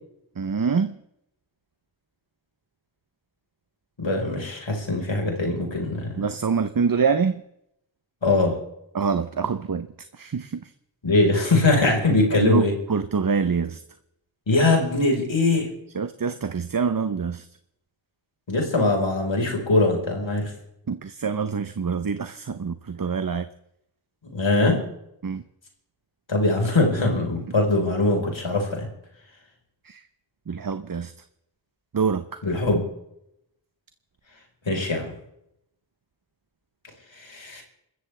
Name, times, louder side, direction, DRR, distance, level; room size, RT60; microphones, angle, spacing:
voice 1, 0.4-1.0 6.2-7.4 8.9-9.9 10.1-10.6 12.3-13.8 15.9-17.5 20.9-23.5 25.2-25.4 29.8-30.0 30.5-31.1 31.9-32.4, right 5 dB, 50° right, 0.8 m, -25 dB
voice 2, 4.0-6.2 8.2-8.6 11.0-12.7 14.5-15.7 18.5-20.5 24.3-24.8 26.3-28.9 32.4-32.8 34.7-35.1 37.3-37.6, left 2 dB, 85° left, 4.4 m, -22 dB
27.0 x 14.5 x 3.3 m
wide cardioid pair, 65°, 44 cm